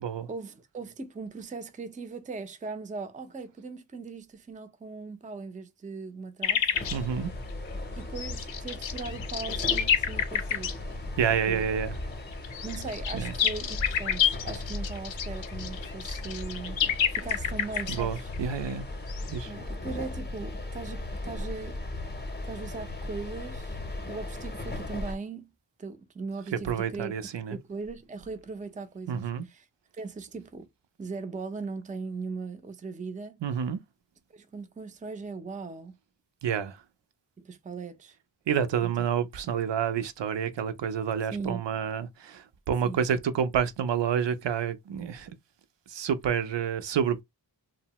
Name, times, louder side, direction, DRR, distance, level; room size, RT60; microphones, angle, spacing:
voice 1, 0.3-6.7 8.0-10.8 11.5-11.6 12.6-16.8 17.1-18.3 19.5-21.8 22.4-23.8 24.1-25.5 25.8-27.2 27.5-29.7 29.9-30.7 31.0-33.4 34.3-35.9 37.4-38.2 38.8-38.9 41.3-41.6 42.8-43.1, right 4 dB, 20° right, 0.4 m, -39 dB
sound 1, 6.4-7.0 8.2-10.8 12.3-18.7 19.1-19.3, left 8 dB, 75° left, 0.5 m, -29 dB
sound 2, 6.7-25.2, left 2 dB, 20° left, 0.7 m, -37 dB
voice 2, 6.9-7.3 11.2-12.0 13.1-13.3 17.9-18.9 19.3-19.5 26.5-27.6 29.1-29.5 33.4-33.8 36.4-36.8 38.5-45.3 45.9-47.2, right 8 dB, 65° right, 0.5 m, -29 dB
2.6 x 2.0 x 2.9 m
wide cardioid pair, 50°, 46 cm